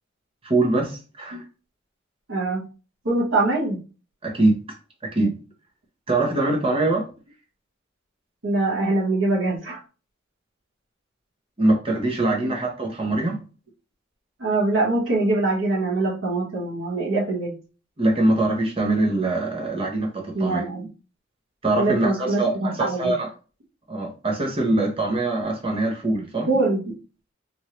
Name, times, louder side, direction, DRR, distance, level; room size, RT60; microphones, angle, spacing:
voice 1, 0.4-1.4 4.2-4.6 5.1-5.3 6.1-7.1 11.6-13.4 18.0-20.6 21.6-23.3 23.9-26.5, right 2 dB, 30° right, 1 dB, 0.7 m, -23 dB
voice 2, 2.3-2.6 3.0-3.8 8.4-9.8 12.4-12.5 14.4-17.5 20.3-20.9 21.8-23.1 26.4-26.8, right 2 dB, 90° right, -5 dB, 1.1 m, -23 dB
3.1 x 2.6 x 2.9 m, 0.34 s
head